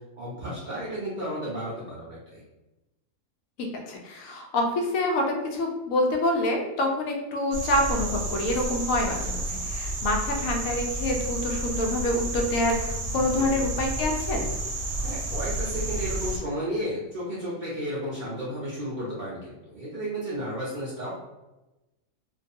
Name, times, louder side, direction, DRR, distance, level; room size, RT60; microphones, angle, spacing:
voice 1, 0.2-2.4 13.3-13.7 15.0-21.1, equal, 50° right, -7 dB, 0.5 m, -33 dB
voice 2, 3.6-14.5, left 1 dB, 75° left, 1 dB, 1.0 m, -27 dB
sound 1, 7.5-16.4, right 2 dB, 85° right, 1.1 m, -31 dB
2.6 x 2.3 x 2.6 m, 1.0 s
omnidirectional pair, 1.5 m